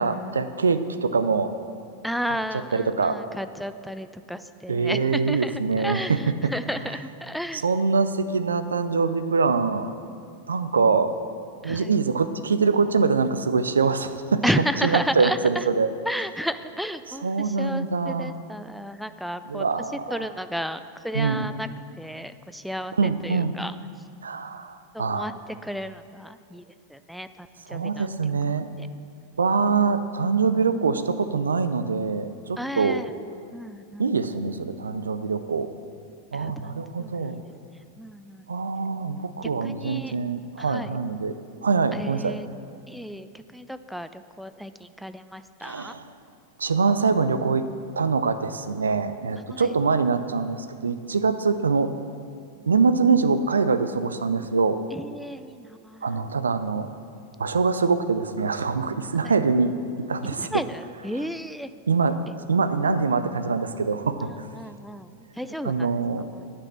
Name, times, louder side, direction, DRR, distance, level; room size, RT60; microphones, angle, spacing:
voice 1, 0.0-1.5 2.7-3.2 4.7-6.5 7.5-9.9 10.5-11.1 11.6-14.4 14.8-15.9 17.2-18.3 19.4-20.2 21.1-21.5 23.0-23.6 24.2-25.3 27.7-28.7 29.4-33.0 34.0-35.7 36.3-37.4 38.5-41.3 41.6-42.4 45.6-46.1 46.6-47.7 48.0-51.9 52.7-54.8 56.0-56.9 57.4-59.7 60.1-60.5 61.9-62.2 62.5-64.3 65.6-66.3, right 4 dB, 70° right, 11 dB, 0.5 m, -24 dB
voice 2, 2.0-7.6 11.6-11.9 14.4-15.6 16.1-21.7 22.0-23.7 24.9-25.3 25.6-26.6 26.9-27.3 27.7-28.1 28.8-28.9 32.6-33.1 33.5-34.1 36.3-37.5 38.0-38.5 39.4-40.1 40.6-41.0 41.9-42.5 42.9-45.9 49.5-49.7 54.9-56.2 60.4-61.7 64.2-65.9 66.4-66.5, equal, ahead, 11 dB, 0.4 m, -33 dB
9.7 x 6.2 x 7.4 m, 2.4 s
figure-of-eight pair, 90°, 0 cm